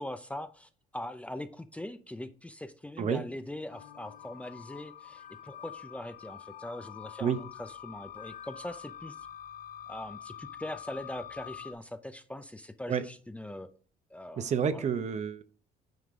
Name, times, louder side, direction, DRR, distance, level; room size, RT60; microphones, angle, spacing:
voice 1, 0.0-9.2 9.9-13.7 14.1-14.9, left 1 dB, 10° left, 9 dB, 0.6 m, -41 dB
sound 1, 3.7-11.7, left 10 dB, 55° left, 1.1 m, -46 dB
voice 2, 14.4-15.4, right 7 dB, 45° right, 11 dB, 0.8 m, -29 dB
9.5 x 5.3 x 3.8 m, 0.39 s
cardioid pair, 110°, 17 cm